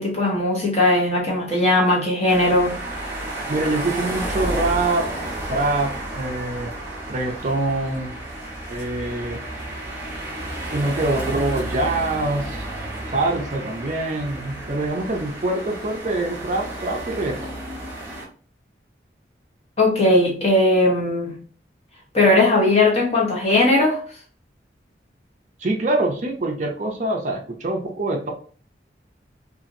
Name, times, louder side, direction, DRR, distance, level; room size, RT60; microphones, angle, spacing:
voice 1, 0.0-2.7 19.8-21.4 22.1-24.0, left 2 dB, 35° left, 1.0 m, -18 dB
sound 1, 2.3-18.2, right 1 dB, 15° right, 0.8 m, -32 dB
voice 2, 3.5-5.1 5.5-6.7 7.1-8.2 8.7-9.4 10.7-12.7 13.1-17.4 25.6-28.3, right 2 dB, 40° right, 0.4 m, -24 dB
2.9 x 2.4 x 2.5 m
head